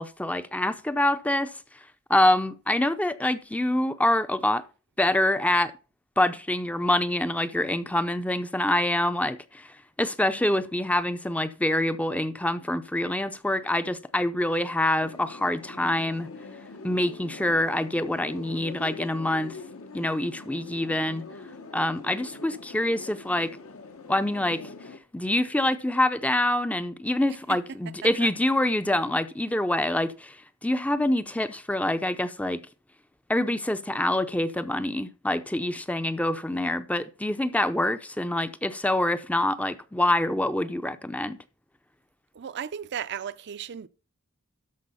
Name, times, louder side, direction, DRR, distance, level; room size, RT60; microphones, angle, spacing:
voice 1, 0.0-4.6 5.0-5.7 6.2-16.3 16.8-19.6 19.9-21.2 21.7-23.5 24.1-24.7 25.1-32.6 33.3-41.4, left 1 dB, 5° left, 0.5 m, -26 dB
sound 1, 15.0-25.0, left 3 dB, 75° left, 1.2 m, -43 dB
voice 2, 27.9-28.3 42.3-43.9, right 8 dB, 55° right, 0.5 m, -36 dB
13.0 x 4.9 x 5.5 m
head